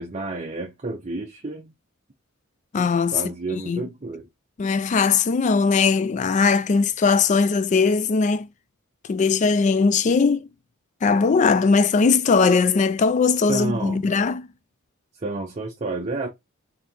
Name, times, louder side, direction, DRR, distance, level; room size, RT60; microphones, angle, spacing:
voice 1, 0.0-1.7 3.1-4.2 13.5-14.1 15.2-16.3, right 3 dB, 30° right, 0.6 m, -30 dB
voice 2, 2.7-3.2 3.5-3.8 4.6-8.5 9.1-10.5 11.0-14.5, left 4 dB, 35° left, 0.3 m, -20 dB
4.3 x 2.8 x 3.6 m
head